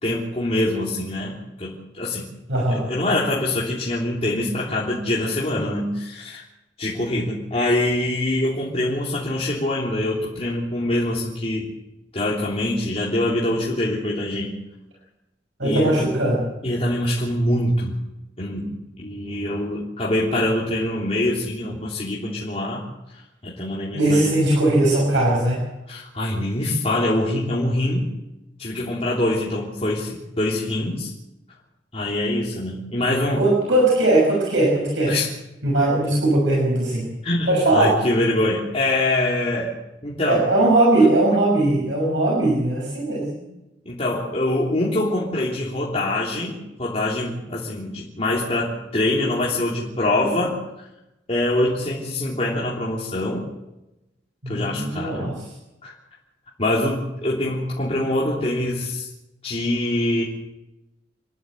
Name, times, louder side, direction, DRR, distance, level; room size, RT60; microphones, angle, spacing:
voice 1, 0.0-2.3 2.7-6.4 6.8-11.7 12.1-14.5 15.6-16.1 16.6-17.9 18.4-18.7 19.0-22.8 23.4-24.3 25.9-28.1 28.6-31.1 31.9-33.4 35.1-35.3 37.2-39.7 40.0-40.5 43.8-50.6 51.3-53.4 54.5-55.3 55.8-55.9 56.6-59.1 59.4-60.2, left 1 dB, 35° left, -6 dB, 3.4 m, -24 dB
voice 2, 2.5-2.8 15.6-16.4 23.9-25.6 33.4-35.1 35.6-37.1 37.5-37.9 40.3-43.3 54.4-55.3, right 2 dB, 80° right, -3 dB, 6.2 m, -19 dB
28.0 x 12.0 x 7.9 m, 0.95 s
head